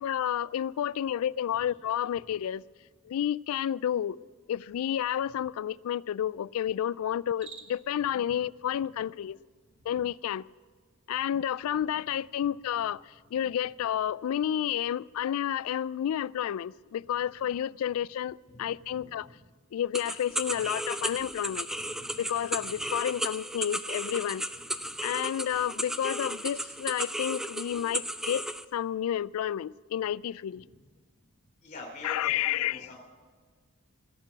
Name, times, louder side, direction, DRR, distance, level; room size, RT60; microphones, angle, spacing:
voice 1, 0.0-2.6 3.0-4.2 4.5-9.4 9.9-10.5 11.1-19.3 19.7-21.7 22.2-24.4 25.0-28.4 28.7-30.6 32.0-32.9, left 10 dB, 80° left, 0.3 m, -30 dB
Cricket, 7.2-8.0, right 6 dB, 60° right, 1.5 m, -48 dB
voice 2, 18.5-19.4 21.5-22.2 22.6-22.9 24.8-24.9 30.6-30.7 31.6-33.0, left 2 dB, 35° left, 3.2 m, -47 dB
sound 1, 19.9-28.6, right 1 dB, ahead, 0.3 m, -35 dB
20.0 x 6.7 x 8.2 m
head